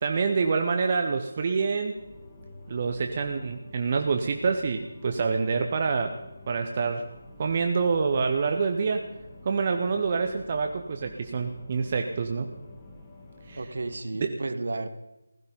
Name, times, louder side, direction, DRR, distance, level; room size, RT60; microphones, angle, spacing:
voice 1, 0.0-2.0 2.7-6.2 6.5-7.1 7.4-9.1 9.4-12.5 13.5-13.7 14.2-14.3, right 5 dB, 30° right, 5 dB, 0.7 m, -26 dB
sound 1, 1.9-14.0, left 1 dB, 15° left, 2.1 m, -49 dB
voice 2, 13.6-14.9, right 3 dB, 50° right, 11 dB, 1.0 m, -32 dB
15.5 x 13.0 x 5.2 m, 0.96 s
figure-of-eight pair, 160°, 0 cm